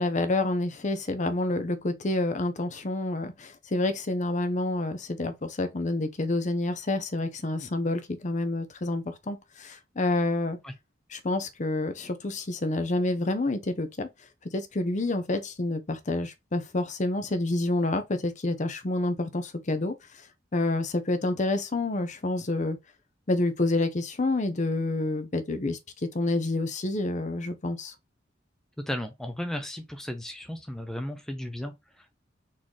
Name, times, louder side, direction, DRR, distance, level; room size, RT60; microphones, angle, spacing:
voice 1, 0.0-10.6 11.1-14.1 14.4-19.9 20.5-22.8 23.3-27.9, left 2 dB, 40° left, 0.7 m, -28 dB
voice 2, 28.9-32.2, left 1 dB, 5° left, 0.6 m, -35 dB
4.2 x 3.1 x 3.7 m
head